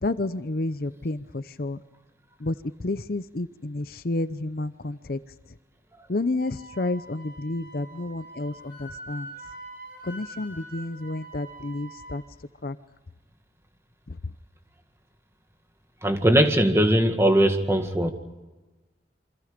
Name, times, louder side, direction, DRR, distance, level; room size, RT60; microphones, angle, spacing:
voice 1, 0.0-1.8 2.4-5.2 6.1-9.3 10.0-12.2 12.6-12.8 14.1-14.2, left 2 dB, 50° left, 13 dB, 0.7 m, -30 dB
Wind instrument woodwind instrument, 6.4-12.2, right 1 dB, 50° right, 7.3 m, -44 dB
voice 2, 16.0-18.1, right 1 dB, 15° right, 5 dB, 1.9 m, -20 dB
28.5 x 25.5 x 5.2 m, 1.2 s
head